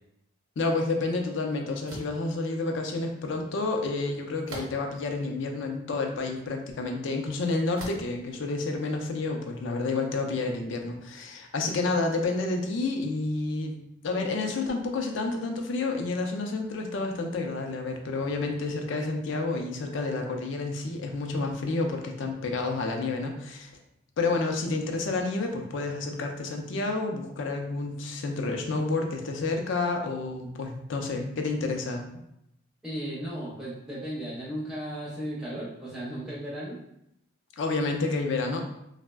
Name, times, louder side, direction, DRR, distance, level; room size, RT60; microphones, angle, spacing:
voice 1, 0.6-13.8 14.0-23.7 24.2-32.2 37.6-38.6, left 3 dB, 60° left, 3 dB, 0.4 m, -30 dB
sound 1, 1.9-2.2 4.5-5.0 5.7-5.8 7.7-8.2, right 1 dB, 85° right, 0.7 m, -40 dB
voice 2, 32.8-36.8, right 1 dB, 5° right, -8 dB, 0.4 m, -35 dB
3.3 x 2.0 x 2.2 m, 0.79 s
head